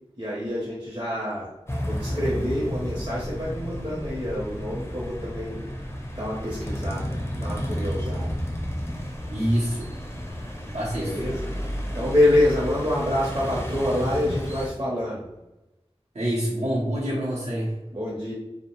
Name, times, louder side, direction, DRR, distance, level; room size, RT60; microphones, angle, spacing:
voice 1, 0.2-1.5 1.8-5.6 6.1-8.4 10.9-11.5 11.9-15.3 17.9-18.3, left 1 dB, 40° right, -7 dB, 0.7 m, -26 dB
sound 1, 1.7-14.7, equal, 25° left, 0.5 m, -32 dB
voice 2, 9.3-9.9 10.7-11.2 16.1-17.7, equal, 75° right, -8 dB, 0.7 m, -26 dB
2.6 x 2.1 x 2.9 m, 0.98 s
wide cardioid pair, 40°, 11 cm